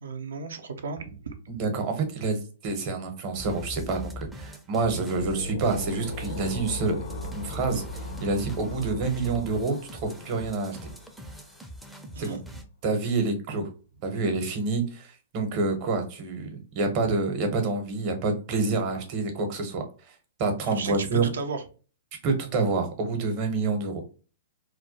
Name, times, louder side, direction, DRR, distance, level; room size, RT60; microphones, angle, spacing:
voice 1, 0.0-1.4 12.1-12.4 20.8-21.6, right 4 dB, 80° right, 6 dB, 0.4 m, -34 dB
voice 2, 1.5-7.0 7.3-10.9 12.2-12.4 12.8-13.7 14.0-21.2 22.2-24.0, right 3 dB, 45° right, 5 dB, 0.7 m, -28 dB
sound 1, 3.4-12.6, equal, 5° right, 0.4 m, -41 dB
sound 2, 5.1-11.6, left 2 dB, 70° left, 0.5 m, -39 dB
2.2 x 2.1 x 2.7 m, 0.36 s
hypercardioid pair, 120°, 0 cm